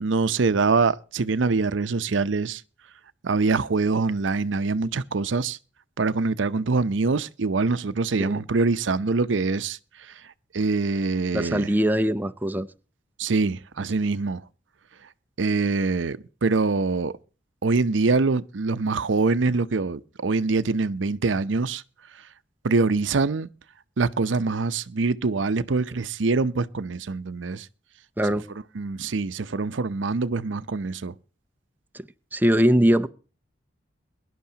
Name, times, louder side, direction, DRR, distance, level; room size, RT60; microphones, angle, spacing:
voice 1, 0.0-2.6 3.2-5.6 6.0-9.8 10.1-10.2 10.5-11.7 13.2-14.4 15.4-17.2 17.6-21.8 22.6-23.5 24.0-27.7 28.8-31.1, right 4 dB, 90° right, 0.6 m, -24 dB
voice 2, 11.3-12.7 28.2-28.5 31.9-33.1, equal, 10° right, 0.5 m, -22 dB
22.5 x 11.0 x 2.8 m
head